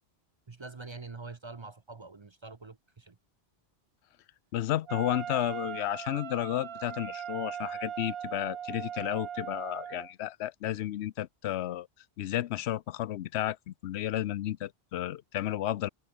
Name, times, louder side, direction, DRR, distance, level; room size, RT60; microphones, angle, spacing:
voice 1, 0.5-3.2, right 3 dB, 30° right, 0.6 m, -45 dB
voice 2, 4.5-11.9 12.2-15.9, left 13 dB, 90° left, 0.9 m, -32 dB
Wind instrument woodwind instrument, 4.9-10.1, right 9 dB, 65° right, 1.0 m, -39 dB
omnidirectional pair, 1.1 m